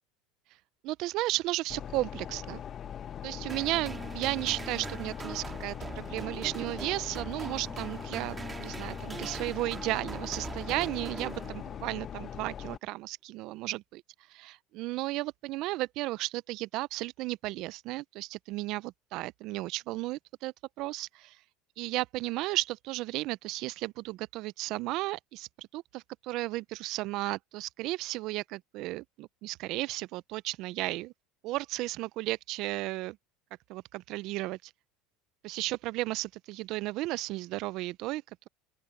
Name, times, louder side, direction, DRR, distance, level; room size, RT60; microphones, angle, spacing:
voice 1, 0.8-2.6 3.2-14.0 14.3-21.4 21.8-31.1 31.4-33.2 33.7-34.6 35.4-38.5, right 19 dB, 55° right, 0.4 m, -34 dB
sound 1, 1.7-12.8, left 9 dB, 35° left, 0.9 m, -41 dB
sound 2, 3.5-12.0, right 4 dB, 20° right, 2.0 m, -42 dB
open air
supercardioid pair, 130°, 0 cm